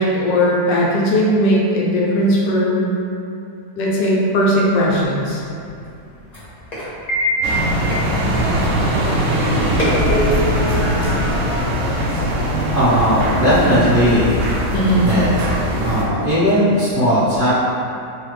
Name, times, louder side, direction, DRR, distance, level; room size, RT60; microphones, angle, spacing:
voice 1, 0.0-2.9 3.8-5.4 14.7-15.1, equal, 80° left, -4 dB, 1.2 m, -17 dB
sound 1, 4.9-12.8, equal, 35° left, 0.6 m, -27 dB
sound 2, 7.4-16.0, equal, 75° right, 0.8 m, -20 dB
voice 2, 12.7-14.3 15.0-15.3 15.8-17.5, equal, 40° right, -15 dB, 1.0 m, -17 dB
3.2 x 2.1 x 3.0 m, 2.6 s
omnidirectional pair, 1.9 m